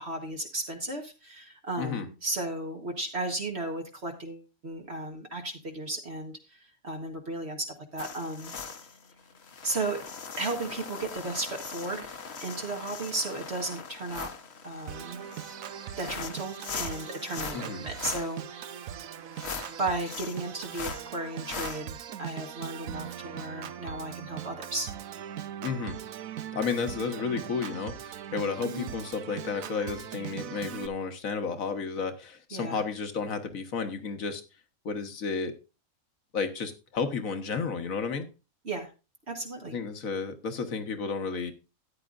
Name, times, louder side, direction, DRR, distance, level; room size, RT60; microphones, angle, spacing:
voice 1, 0.0-8.8 9.6-10.0 10.4-14.3 14.6-15.2 16.0-18.8 19.8-24.9 28.6-28.9 32.5-32.8 38.6-38.9 39.3-39.8, right 2 dB, 50° right, 2 dB, 1.6 m, -35 dB
sound 1, 8.0-21.8, left 5 dB, 50° left, 1.3 m, -41 dB
Organ, 14.9-30.9, right 10 dB, 75° right, 1.1 m, -40 dB
voice 2, 25.6-26.0 26.5-34.4 34.8-35.5 36.3-38.3 39.7-41.5, left 5 dB, 70° left, 7 dB, 1.7 m, -32 dB
13.5 x 9.8 x 2.5 m, 0.30 s
omnidirectional pair, 1.5 m